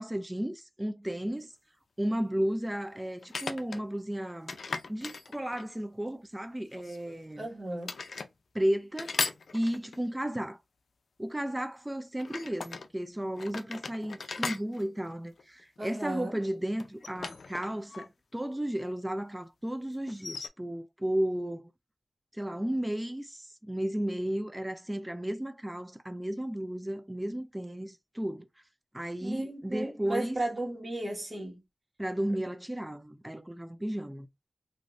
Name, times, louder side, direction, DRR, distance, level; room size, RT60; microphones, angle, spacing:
voice 1, 0.0-1.5 2.0-4.6 4.9-7.5 8.5-9.2 9.5-10.6 11.2-21.6 22.3-28.5 28.9-30.4 32.0-34.3, right 1 dB, 15° right, 0.4 m, -33 dB
sound 1, 1.1-1.2 3.2-3.8 4.5-5.8 6.8-7.5 7.8-8.3 9.0-10.1 12.2-12.9 13.4-15.8 16.8-18.1 18.3-18.4 20.1-20.5, left 4 dB, 85° left, 0.4 m, -38 dB
voice 2, 7.4-7.9 15.8-16.4 29.2-31.6, right 1 dB, 40° right, 1.2 m, -35 dB
2.5 x 2.4 x 3.1 m
wide cardioid pair, 60°, 0 cm